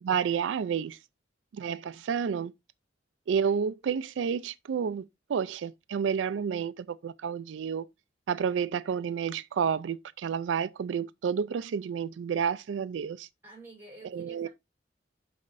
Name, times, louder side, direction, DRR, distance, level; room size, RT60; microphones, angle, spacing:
voice 1, 0.0-1.0 1.5-2.5 3.3-5.0 5.3-7.8 8.3-13.3 14.1-14.5, right 7 dB, 85° right, 0.4 m, -30 dB
voice 2, 13.4-14.5, right 2 dB, 10° right, 4.9 m, -49 dB
12.0 x 4.2 x 2.5 m
head